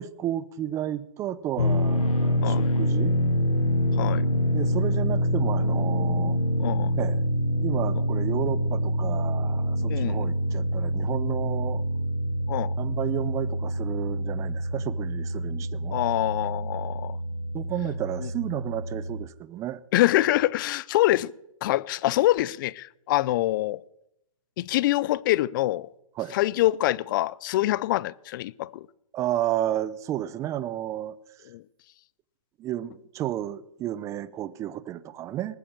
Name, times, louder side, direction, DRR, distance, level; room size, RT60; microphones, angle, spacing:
voice 1, 0.0-3.2 4.5-6.4 7.0-7.2 7.6-11.8 12.8-16.0 17.5-19.8 26.2-26.4 29.1-31.2 32.6-35.6, right 12 dB, 15° right, 0.6 m, -32 dB
sound 1, 1.6-19.2, equal, 80° left, 1.5 m, -26 dB
voice 2, 6.6-6.9 9.9-10.3 12.5-12.7 15.9-17.2 18.2-18.3 19.9-21.3 21.6-23.8 24.6-25.9 26.3-28.9 31.5-31.6, left 16 dB, 35° left, 0.5 m, -25 dB
20.0 x 8.5 x 7.4 m
hypercardioid pair, 145°, 18 cm